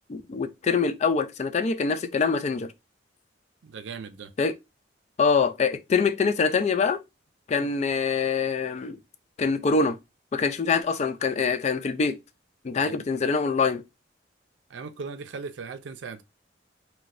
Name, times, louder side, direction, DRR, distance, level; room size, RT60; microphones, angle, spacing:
voice 1, 0.1-2.7 4.4-4.6 5.2-7.0 7.5-9.0 9.4-10.0 10.3-12.2 12.6-13.8, left 5 dB, 40° left, 0.3 m, -24 dB
voice 2, 3.6-4.3 7.6-7.7 12.8-12.9 14.7-16.2, right 5 dB, 80° right, 0.4 m, -38 dB
4.0 x 2.2 x 2.4 m
head